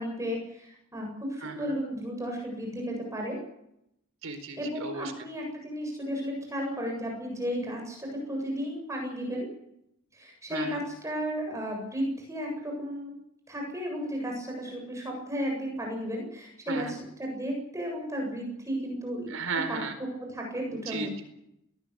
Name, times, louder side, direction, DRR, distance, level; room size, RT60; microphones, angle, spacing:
voice 1, 0.0-3.4 4.6-9.5 10.1-13.1 13.5-19.3 19.7-19.8 20.2-21.2, equal, 15° right, 0 dB, 7.7 m, -34 dB
voice 2, 1.4-1.7 4.2-5.1 10.5-10.8 16.7-17.0 19.3-20.0 20.7-21.2, right 4 dB, 65° right, 8 dB, 4.4 m, -34 dB
22.5 x 19.0 x 8.3 m, 0.78 s
head